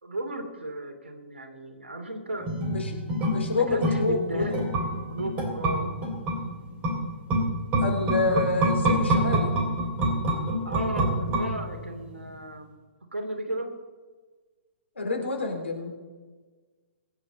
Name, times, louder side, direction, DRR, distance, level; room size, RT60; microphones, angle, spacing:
voice 1, 0.0-2.5 3.5-4.6 5.1-6.0 8.3-8.5 10.6-12.7 13.1-13.7, right 1 dB, 70° right, 5 dB, 2.8 m, -34 dB
sound 1, 2.4-12.0 12.3-12.4, right 1 dB, 20° right, 3.1 m, -27 dB
voice 2, 3.3-4.6 7.8-9.6 15.0-15.9, left 3 dB, 70° left, 2 dB, 3.7 m, -28 dB
22.0 x 10.0 x 4.2 m, 1.4 s
figure-of-eight pair, 120°, 7 cm